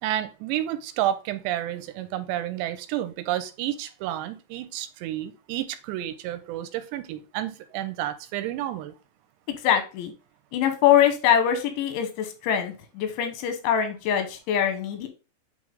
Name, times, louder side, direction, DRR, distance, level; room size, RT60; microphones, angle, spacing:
voice 1, 0.0-8.9, right 12 dB, 85° right, 10 dB, 2.8 m, -30 dB
voice 2, 9.5-10.1 10.5-15.1, left 9 dB, 90° left, 7 dB, 3.4 m, -23 dB
8.3 x 3.2 x 3.6 m, 0.31 s
omnidirectional pair, 5.1 m